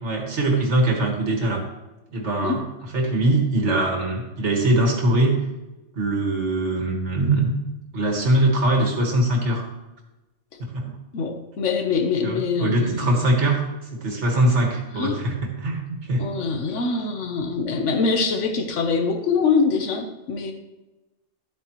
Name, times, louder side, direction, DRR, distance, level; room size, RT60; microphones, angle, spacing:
voice 1, 0.0-1.6 2.1-2.6 2.9-5.3 6.0-7.5 7.9-9.6 10.6-10.9 12.2-13.6 13.9-16.3, right 1 dB, 70° right, 1 dB, 2.0 m, -22 dB
voice 2, 11.1-13.2 14.9-15.1 16.2-20.5, left 5 dB, 75° left, 6 dB, 1.3 m, -24 dB
12.5 x 8.5 x 3.0 m, 1.0 s
omnidirectional pair, 1.3 m